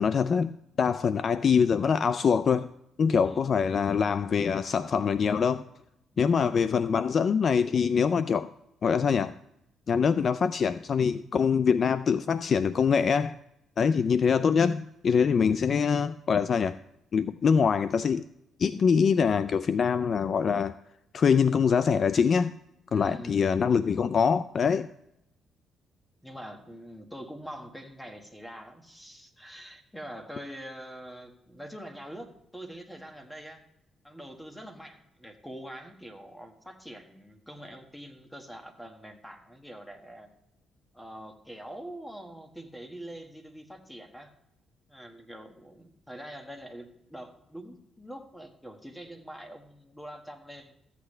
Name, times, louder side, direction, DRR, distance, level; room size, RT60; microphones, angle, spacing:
voice 1, 0.0-2.7 3.0-5.6 6.2-8.5 8.8-9.3 9.9-13.4 13.8-16.8 17.1-18.2 18.6-20.7 21.1-22.5 22.9-24.9, left 6 dB, 50° left, 0.3 m, -24 dB
voice 2, 3.2-3.6 6.1-6.2 22.9-23.4 26.2-33.6 34.0-40.3 40.9-44.3 44.9-50.7, equal, 5° left, 1.6 m, -44 dB
14.0 x 8.3 x 3.2 m
cardioid pair, 90°, 0 cm